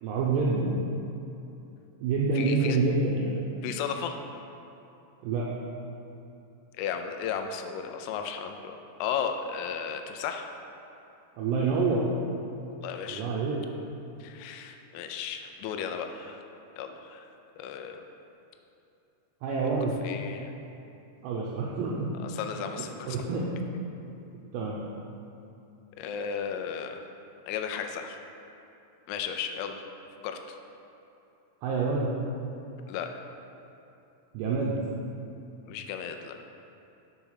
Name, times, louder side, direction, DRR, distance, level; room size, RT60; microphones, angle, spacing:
voice 1, 0.0-0.7 2.0-3.4 5.2-5.5 11.4-12.1 13.1-13.6 19.4-20.0 21.2-22.1 23.1-23.4 24.5-24.8 31.6-32.2 34.3-34.8, right 4 dB, 85° right, -4 dB, 2.4 m, -27 dB
voice 2, 2.3-2.8 3.6-4.2 6.8-8.8 9.0-10.5 12.8-13.2 14.2-16.4 16.8-17.3 17.6-18.0 20.0-20.5 22.2-23.2 26.0-27.0 27.5-28.2 29.1-29.8 30.2-30.6 32.9-33.1 35.7-36.4, left 7 dB, 90° left, 5 dB, 3.1 m, -34 dB
6.9 x 4.7 x 5.6 m, 2.8 s
omnidirectional pair, 5.6 m